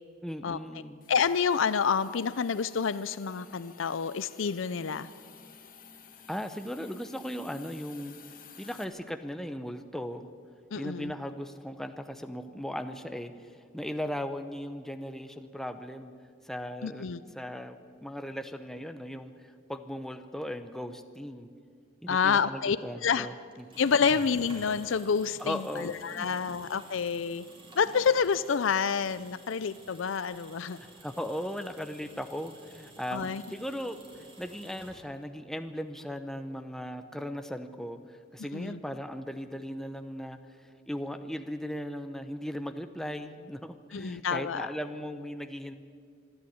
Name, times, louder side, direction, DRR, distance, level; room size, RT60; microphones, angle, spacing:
voice 1, 0.2-1.0 6.3-8.2 8.6-10.3 10.8-16.1 16.4-17.1 17.3-21.5 22.0-23.7 25.4-26.4 30.8-45.7, equal, ahead, 8 dB, 0.8 m, -38 dB
Hiss, 1.0-8.8, left 7 dB, 45° left, 1.8 m, -53 dB
voice 2, 1.1-5.1 10.7-11.1 16.8-17.2 22.1-22.8 23.0-23.3 23.8-27.4 27.8-30.8 33.1-33.4 38.4-38.8 43.9-44.7, left 6 dB, 75° left, 15 dB, 0.5 m, -28 dB
sound 1, 23.5-35.4, right 2 dB, 25° right, 3.9 m, -52 dB
25.5 x 11.5 x 9.4 m, 2.1 s
head